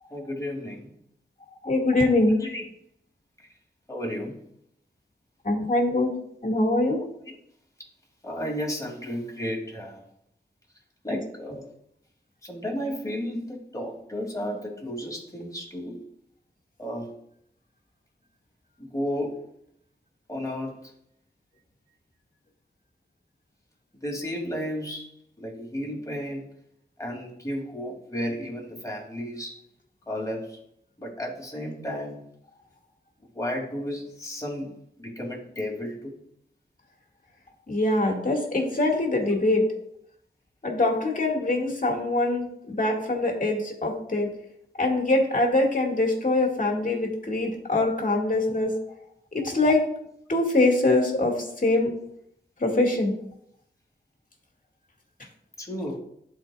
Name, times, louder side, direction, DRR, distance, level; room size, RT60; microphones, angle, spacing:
voice 1, 0.1-0.9 2.4-2.6 3.9-4.4 7.3-7.4 8.2-10.0 11.0-11.7 12.4-16.0 16.8-17.1 18.8-19.4 20.3-20.8 24.0-25.1 25.4-26.5 27.0-29.6 30.1-30.6 31.0-32.2 33.3-34.7 35.0-36.2 55.6-56.0, equal, 15° left, -2 dB, 2.7 m, -33 dB
voice 2, 1.6-2.3 5.4-6.2 6.4-7.0 11.1-11.2 37.7-39.8 40.6-44.3 44.8-48.8 49.3-49.8 50.3-51.9 52.6-53.2, left 2 dB, 45° left, 0 dB, 2.0 m, -23 dB
11.5 x 4.4 x 2.4 m, 0.73 s
cardioid pair, 50°, 19 cm